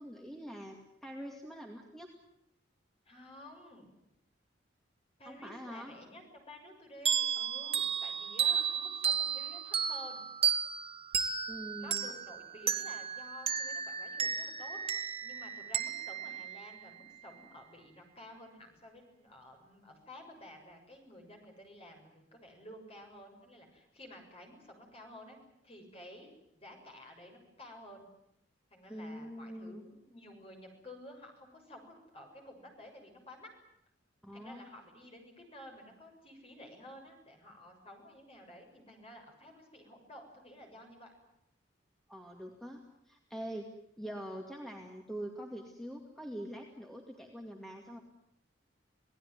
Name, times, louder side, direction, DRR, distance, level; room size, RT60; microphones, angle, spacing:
voice 1, 0.0-2.1 5.2-5.9 11.5-12.1 28.9-29.9 34.2-34.7 42.1-42.8 43.1-43.7 44.0-48.0, equal, ahead, 1 dB, 2.3 m, -44 dB
voice 2, 3.1-3.9 5.2-10.2 11.8-14.8 15.2-25.4 25.6-28.0 28.7-33.5 34.3-41.1, left 1 dB, 30° left, 2 dB, 7.1 m, -52 dB
sound 1, 7.1-17.3, right 7 dB, 30° right, 1.7 m, -34 dB
27.5 x 18.5 x 9.6 m, 0.79 s
head